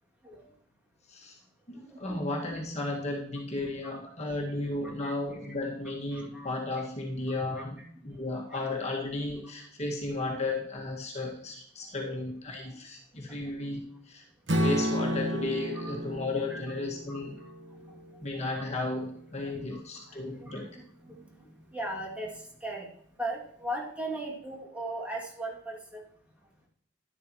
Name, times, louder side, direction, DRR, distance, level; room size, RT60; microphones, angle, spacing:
voice 1, 1.1-1.4 1.7-14.2 14.5-17.4 18.2-20.7, left 2 dB, 40° left, -1 dB, 1.9 m, -34 dB
voice 2, 1.7-2.2 3.8-4.0 4.8-5.1 6.1-6.5 7.3-7.6 8.5-8.6 12.0-12.1 15.8-15.9 16.5-16.6 17.1-17.5 17.9-18.0 18.3-18.5 19.4-22.9 23.2-26.0, right 1 dB, 10° right, -3 dB, 2.5 m, -39 dB
Strum, 14.5-18.7, equal, 70° right, 1.2 m, -32 dB
12.0 x 11.5 x 3.1 m, 0.66 s
head